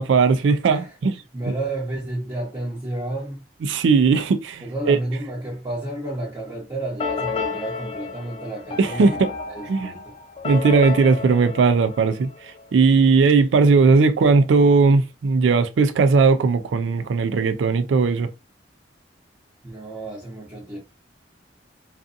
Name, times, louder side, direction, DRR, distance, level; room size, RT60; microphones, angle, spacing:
voice 1, 0.0-1.1 3.7-5.0 8.8-9.3 9.7-9.9 10.4-12.3 12.7-18.3, right 4 dB, 85° right, 0.3 m, -18 dB
voice 2, 1.3-3.4 4.6-10.2 19.6-20.8, right 1 dB, 20° right, 0.7 m, -31 dB
sound 1, 7.0-12.7, left 5 dB, 30° left, 0.4 m, -32 dB
2.6 x 2.4 x 2.4 m
head